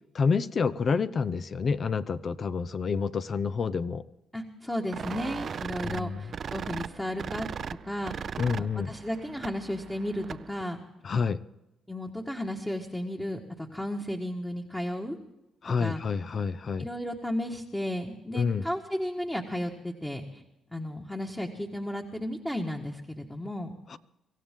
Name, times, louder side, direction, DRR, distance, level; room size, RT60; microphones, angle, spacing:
voice 1, 0.1-4.0 5.8-6.2 8.4-8.9 11.0-11.4 15.6-16.9 18.3-18.6 23.9-24.0, left 5 dB, 45° left, 14 dB, 0.7 m, -28 dB
voice 2, 4.3-8.1 8.6-10.8 11.9-15.2 15.8-16.0 16.8-20.4 20.7-23.7, left 1 dB, 10° left, 1 dB, 1.6 m, -34 dB
sound 1, 4.9-10.6, right 7 dB, 50° right, 0.5 m, -38 dB
24.0 x 15.5 x 3.7 m, 0.92 s
cardioid pair, 90°, 0 cm